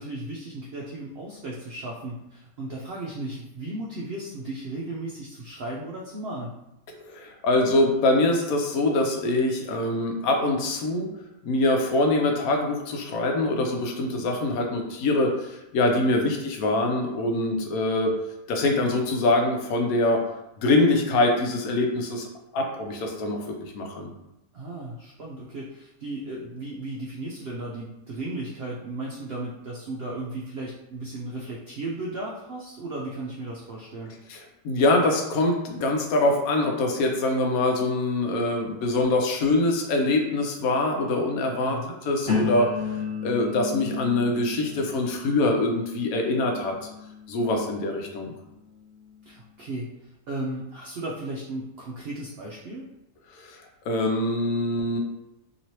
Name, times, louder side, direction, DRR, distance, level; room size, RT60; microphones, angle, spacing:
voice 1, 0.0-6.5 24.5-34.1 41.7-42.0 49.3-49.9 50.3-52.9, right 2 dB, 80° right, -3 dB, 0.5 m, -35 dB
voice 2, 7.0-11.1 11.4-18.1 18.5-20.2 20.6-22.3 22.5-24.1 34.3-46.7 47.3-48.3 53.3-53.6 53.9-55.0, left 2 dB, 75° left, 2 dB, 1.0 m, -24 dB
sound 1, 42.3-48.1 48.7-49.1, left 5 dB, 40° left, 1.5 m, -33 dB
3.0 x 2.9 x 2.8 m, 0.89 s
omnidirectional pair, 1.6 m